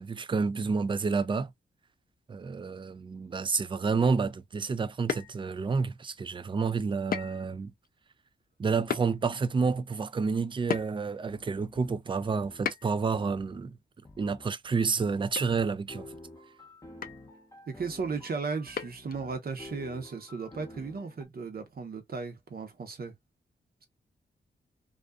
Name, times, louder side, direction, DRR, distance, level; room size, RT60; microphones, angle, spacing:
voice 1, 0.0-1.5 2.3-7.7 8.6-13.7 14.2-16.1, right 4 dB, 25° right, 0.4 m, -29 dB
sound 1, 5.1-5.7 7.1-7.5 7.8-7.9 8.9-9.1 10.7-11.2 12.7-13.1 14.8-15.0 15.4-15.5 15.8-15.9 17.0-17.3 18.8-19.2, left 7 dB, 50° left, 0.4 m, -34 dB
sound 2, 10.6-10.8 11.3-12.7 13.1-13.6 14.0-14.5 15.0-21.2, left 2 dB, 15° left, 0.8 m, -50 dB
voice 2, 17.7-23.1, right 4 dB, 55° right, 0.9 m, -36 dB
2.4 x 2.4 x 2.3 m
cardioid pair, 70°, 19 cm